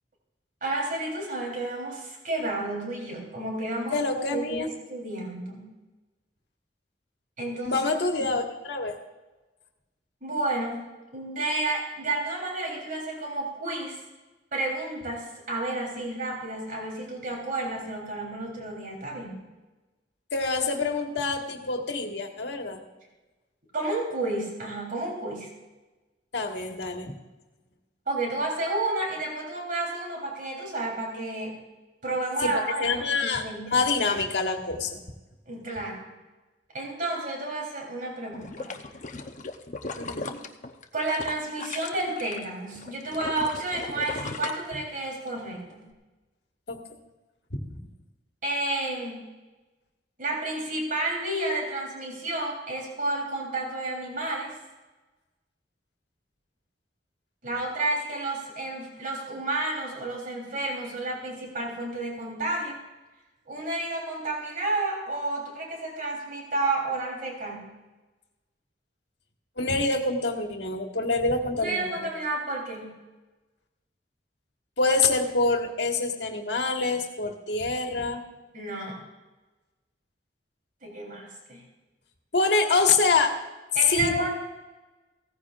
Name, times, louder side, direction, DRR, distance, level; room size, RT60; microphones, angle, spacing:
voice 1, 0.6-4.0 4.3-5.7 7.4-7.8 10.2-10.9 11.1-14.0 14.5-19.4 23.7-25.5 28.1-31.5 32.0-33.8 35.5-36.0 36.7-38.8 40.9-45.9 48.4-49.2 50.2-54.6 57.4-62.8 63.5-67.7 71.6-73.0 78.5-79.0 80.8-81.6 83.7-84.3, right 2 dB, 50° right, -1 dB, 3.6 m, -31 dB
voice 2, 3.9-4.7 7.6-9.0 20.3-22.8 26.3-27.1 32.4-32.5 32.8-33.4 33.7-35.0 40.0-40.4 46.7-46.8 47.5-47.8 69.6-72.1 74.8-78.2 82.3-83.4 83.9-84.2, left 3 dB, 70° left, 3 dB, 1.6 m, -26 dB
sound 1, 38.3-42.4 42.8-45.3 45.7-45.8, left 3 dB, 45° left, 0.8 m, -37 dB
16.5 x 14.5 x 2.5 m, 1.2 s
head